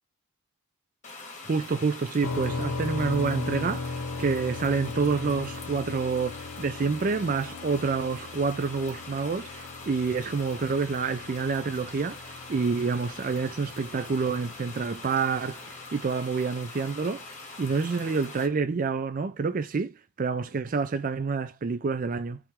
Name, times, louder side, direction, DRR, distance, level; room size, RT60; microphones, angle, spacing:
sound 1, 1.0-18.5, left 3 dB, 35° left, 1.2 m, -43 dB
voice 1, 1.5-3.9 4.2-17.2 17.6-22.4, right 4 dB, 35° right, 0.4 m, -28 dB
sound 2, 2.2-15.9, left 3 dB, 60° left, 0.6 m, -38 dB
3.4 x 3.1 x 4.6 m
head